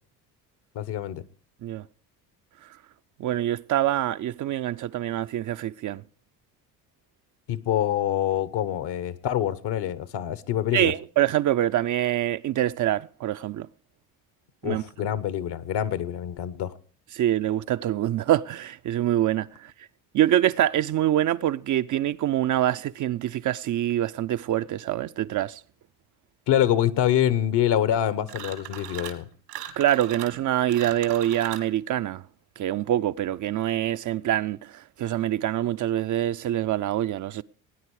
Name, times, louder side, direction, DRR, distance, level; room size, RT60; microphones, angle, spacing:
voice 1, 0.7-1.2 7.5-10.9 14.6-16.7 26.5-29.3, left 11 dB, 60° left, 1.1 m, -25 dB
voice 2, 3.2-6.0 10.7-13.7 14.6-14.8 17.1-19.7 20.1-25.6 29.8-32.2 32.6-37.4, right 12 dB, 40° right, 0.5 m, -25 dB
sound 1, 28.3-29.2 29.5-31.7, right 12 dB, 80° right, 2.0 m, -38 dB
18.5 x 9.6 x 4.8 m
hypercardioid pair, 60°, 46 cm